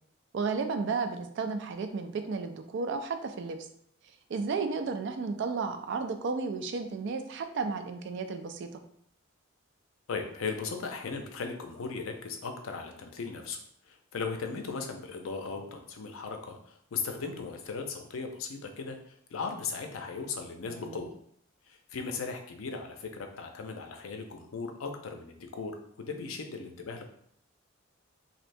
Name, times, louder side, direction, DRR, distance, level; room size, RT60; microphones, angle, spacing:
voice 1, 0.3-3.6 4.3-8.8 20.6-21.0, right 4 dB, 60° right, 7 dB, 0.4 m, -33 dB
voice 2, 10.1-13.6 13.9-21.2 21.7-27.1, left 4 dB, 90° left, 5 dB, 0.5 m, -37 dB
3.2 x 2.7 x 2.6 m, 0.67 s
head